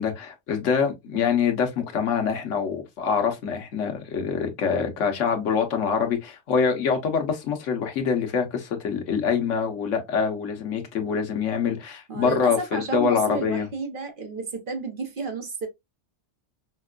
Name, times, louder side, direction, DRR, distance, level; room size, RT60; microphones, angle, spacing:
voice 1, 0.0-13.7, left 6 dB, 85° left, 1.2 m, -25 dB
voice 2, 12.1-15.7, right 3 dB, 50° right, 1.0 m, -31 dB
5.2 x 2.2 x 2.3 m
omnidirectional pair, 1.2 m